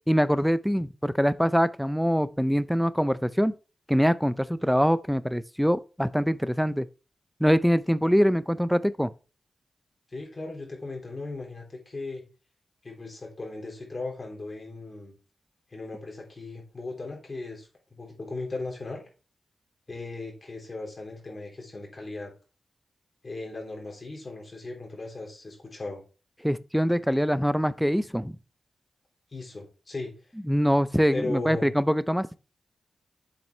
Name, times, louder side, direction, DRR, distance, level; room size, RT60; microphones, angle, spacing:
voice 1, 0.1-3.5 3.9-6.9 7.4-9.1 26.4-28.3 30.5-32.3, equal, ahead, 0.5 m, -24 dB
voice 2, 10.1-12.2 12.8-15.1 15.7-19.0 19.9-22.3 23.2-26.0 29.3-30.1 31.1-31.7, left 3 dB, 40° left, 3.5 m, -37 dB
7.7 x 7.1 x 3.2 m
cardioid pair, 60°, 0 cm